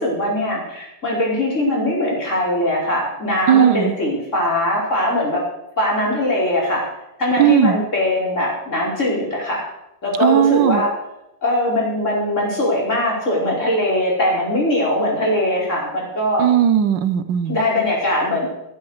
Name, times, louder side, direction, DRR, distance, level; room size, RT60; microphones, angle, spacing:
voice 1, 0.0-5.5 5.8-6.8 7.2-9.6 10.0-10.9 11.4-16.5 17.5-18.5, left 1 dB, 40° left, -4 dB, 5.1 m, -21 dB
voice 2, 3.5-3.9 7.4-7.8 10.2-10.8 16.4-17.6, right 9 dB, 75° right, 13 dB, 1.5 m, -16 dB
14.5 x 13.0 x 4.9 m, 0.88 s
omnidirectional pair, 2.1 m